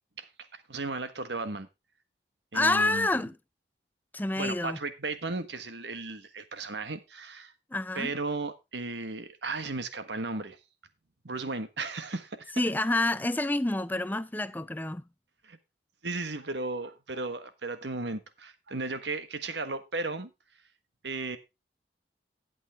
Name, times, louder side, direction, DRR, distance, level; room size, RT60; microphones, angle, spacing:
voice 1, 0.2-1.7 2.5-3.1 4.4-7.5 7.9-10.6 11.2-12.5 15.4-15.6 16.0-20.3 21.0-21.4, right 3 dB, 75° right, 1.5 m, -35 dB
voice 2, 2.5-3.3 4.1-4.8 7.7-8.1 12.6-15.0, left 2 dB, 10° left, 0.5 m, -28 dB
11.5 x 8.6 x 3.4 m
head